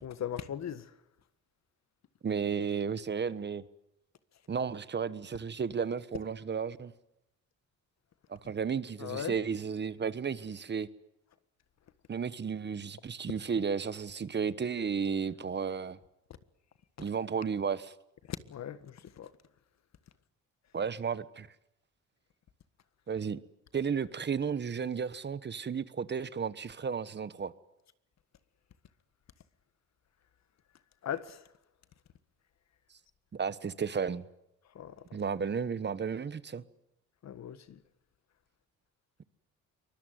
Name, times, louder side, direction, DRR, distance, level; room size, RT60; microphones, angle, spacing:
voice 1, 0.0-0.9 9.0-9.3 18.3-19.3 31.0-31.4 34.7-35.0 37.2-37.8, left 9 dB, 60° left, 1.6 m, -38 dB
voice 2, 2.2-3.6 4.5-6.9 8.3-10.9 12.1-16.0 17.0-17.9 20.7-21.5 23.1-23.4 23.7-27.5 33.3-34.2 35.1-36.6, right 6 dB, 35° right, 1.2 m, -33 dB
23.5 x 21.0 x 9.3 m
cardioid pair, 90°, 30 cm